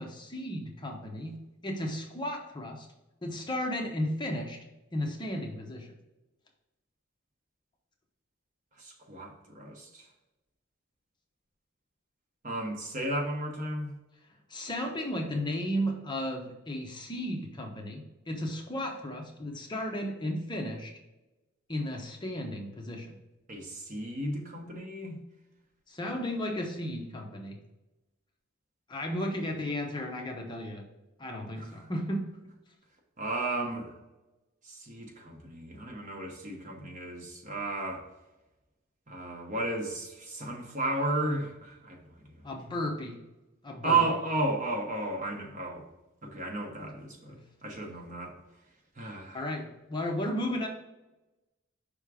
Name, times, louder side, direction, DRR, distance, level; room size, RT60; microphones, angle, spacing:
voice 1, 0.0-1.3 1.6-2.9 3.2-4.6 4.9-5.9 14.5-20.9 21.7-23.2 25.9-27.6 28.9-30.9 31.2-32.2 42.4-43.2 43.6-44.0 47.3-47.4 49.1-50.7, left 1 dB, 25° left, 2 dB, 0.7 m, -34 dB
voice 2, 8.8-10.1 12.4-13.9 23.5-25.2 31.5-31.7 33.2-33.9 34.6-38.0 39.1-42.4 43.8-45.8 46.2-47.4 47.6-48.4 49.0-49.4, right 2 dB, 40° right, 1 dB, 1.1 m, -33 dB
5.5 x 3.5 x 4.8 m, 1.0 s
head